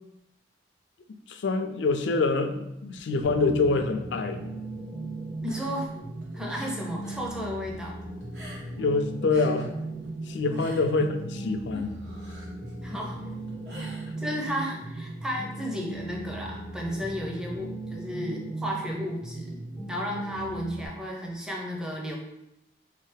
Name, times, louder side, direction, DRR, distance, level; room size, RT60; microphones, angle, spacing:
voice 1, 1.3-4.4 8.8-9.7 10.3-11.9, left 3 dB, 90° left, 7 dB, 0.4 m, -26 dB
sound 1, 3.2-20.9, right 2 dB, 40° right, 0.7 m, -37 dB
voice 2, 5.4-5.9 6.3-7.9 10.5-10.6 12.8-13.2 13.8-13.9 14.2-19.6 19.9-22.2, equal, 5° right, -2 dB, 0.6 m, -33 dB
sound 2, 5.4-7.3 7.6-8.9 9.2-14.6, equal, 70° right, 1.3 m, -47 dB
3.7 x 3.2 x 3.3 m, 0.87 s
head